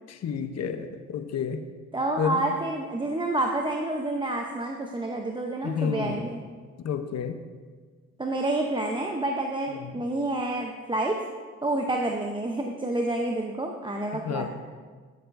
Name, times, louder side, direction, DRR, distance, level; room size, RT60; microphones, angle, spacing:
voice 1, 0.1-1.6 2.2-2.4 5.6-6.2 6.8-7.4 9.8-10.0 14.3-14.5, left 7 dB, 55° left, 8 dB, 0.8 m, -30 dB
voice 2, 1.9-6.4 8.2-11.2 11.6-14.5, right 2 dB, 15° right, 1 dB, 0.7 m, -28 dB
11.5 x 6.9 x 2.6 m, 1.5 s
cardioid pair, 75°, 30 cm